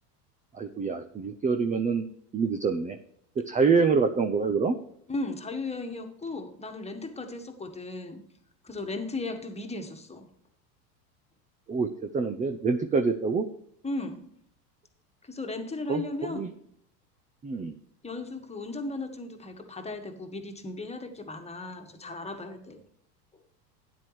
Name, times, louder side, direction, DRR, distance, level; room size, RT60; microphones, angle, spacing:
voice 1, 0.5-2.0 2.3-3.0 3.5-4.8 11.7-13.5 15.9-16.0 16.3-16.5 17.4-17.7, right 5 dB, 15° right, 0.6 m, -26 dB
voice 2, 5.1-8.2 8.6-10.3 13.8-14.3 15.2-16.5 18.0-22.8, left 2 dB, 15° left, 1.7 m, -36 dB
12.5 x 9.8 x 3.2 m
hypercardioid pair, 100°, 49 cm